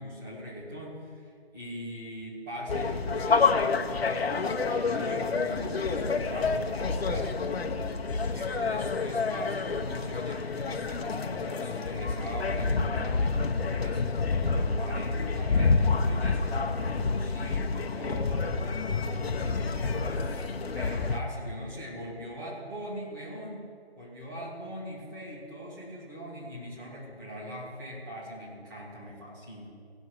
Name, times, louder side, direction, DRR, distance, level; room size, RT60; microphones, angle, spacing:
voice 1, 0.0-7.6 8.3-14.0 14.4-18.6 18.9-23.7 24.0-29.7, equal, 20° right, -6 dB, 2.7 m, -41 dB
sound 1, 2.7-21.2, left 4 dB, 65° left, 0.9 m, -28 dB
16.0 x 6.3 x 6.4 m, 2.2 s
hypercardioid pair, 175°, 32 cm